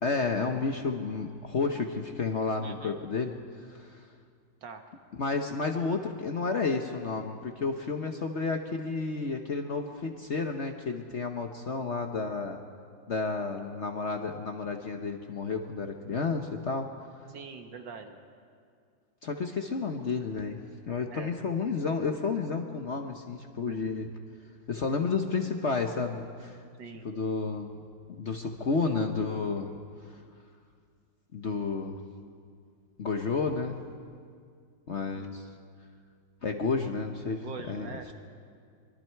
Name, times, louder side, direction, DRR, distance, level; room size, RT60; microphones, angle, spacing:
voice 1, 0.0-4.1 5.2-12.6 13.1-16.9 19.2-24.1 24.7-26.6 27.0-29.7 31.3-32.0 33.0-33.8 34.9-35.4 36.4-37.9, left 4 dB, 45° left, 4 dB, 1.0 m, -31 dB
voice 2, 2.6-3.0 4.6-4.9 17.3-18.2 21.1-21.3 23.7-23.8 26.8-27.1 35.1-35.3 37.4-38.1, right 5 dB, 70° right, 5 dB, 2.1 m, -43 dB
25.5 x 22.5 x 4.6 m, 2.2 s
omnidirectional pair, 2.0 m